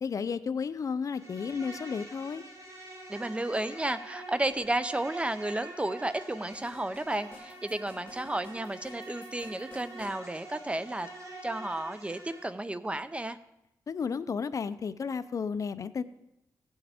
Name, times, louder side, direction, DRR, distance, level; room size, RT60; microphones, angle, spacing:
voice 1, 0.0-2.4 13.9-16.0, left 6 dB, 50° left, 14 dB, 0.4 m, -33 dB
Insect, 1.0-12.5, right 1 dB, 50° right, 4.0 m, -46 dB
voice 2, 3.1-11.1 11.4-13.4, right 1 dB, 15° right, 13 dB, 0.5 m, -32 dB
sound 1, 6.5-10.2, left 2 dB, 15° left, 3.1 m, -53 dB
16.0 x 7.2 x 3.5 m, 0.85 s
wide cardioid pair, 95°, 7 cm